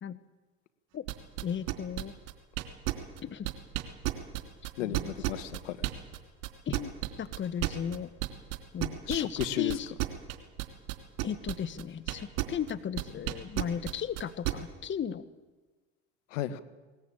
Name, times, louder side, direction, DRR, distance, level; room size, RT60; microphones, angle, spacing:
sound 1, 1.1-6.2 6.4-12.7 13.0-14.5, right 20 dB, 65° right, 3.2 m, -31 dB
voice 1, 1.4-2.1 3.2-3.5 4.8-5.1 6.7-6.9 7.2-8.1 8.7-10.0 11.2-15.2, left 8 dB, 30° left, 13 dB, 1.3 m, -35 dB
voice 2, 4.8-5.8 9.0-9.8 16.3-16.6, left 12 dB, 75° left, 12 dB, 1.5 m, -34 dB
20.5 x 19.5 x 8.8 m, 1.3 s
hypercardioid pair, 80°, 37 cm